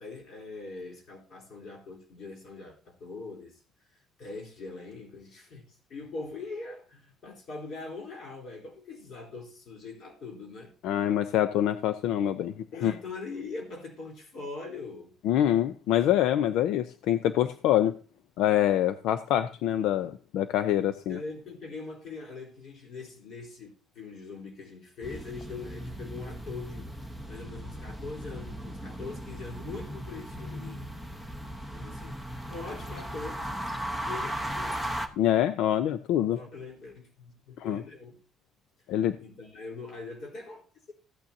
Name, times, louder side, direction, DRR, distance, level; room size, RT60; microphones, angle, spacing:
voice 1, 0.0-3.6 4.2-10.7 12.7-15.1 21.1-26.9 27.3-30.8 31.7-33.4 34.1-34.9 36.3-38.2 39.2-40.9, left 3 dB, 40° left, 4.0 m, -42 dB
voice 2, 10.8-12.5 12.8-12.9 15.2-17.9 18.4-21.2 35.2-36.4 37.6-37.8 38.9-39.2, left 11 dB, 65° left, 0.7 m, -25 dB
sound 1, 25.0-35.1, equal, 10° left, 1.0 m, -37 dB
15.0 x 9.0 x 2.8 m
cardioid pair, 180°, 0 cm